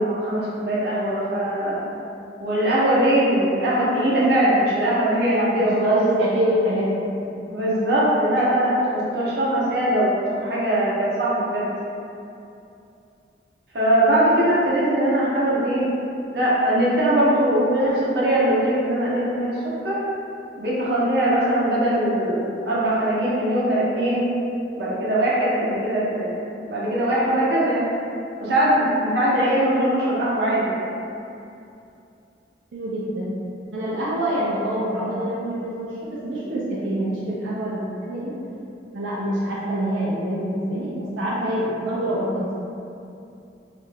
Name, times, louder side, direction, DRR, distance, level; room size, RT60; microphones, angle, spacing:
voice 1, 0.0-1.9 2.4-5.9 7.5-11.7 13.7-15.8 16.3-19.5 19.8-20.0 20.6-24.2 24.8-26.3 26.7-27.9 28.4-30.8, right 1 dB, 60° right, -8 dB, 0.7 m, -21 dB
voice 2, 5.4-7.3 8.3-8.4 32.7-33.3 33.7-38.3 38.9-42.5, equal, 90° right, -7 dB, 0.4 m, -26 dB
2.4 x 2.1 x 3.3 m, 2.6 s
head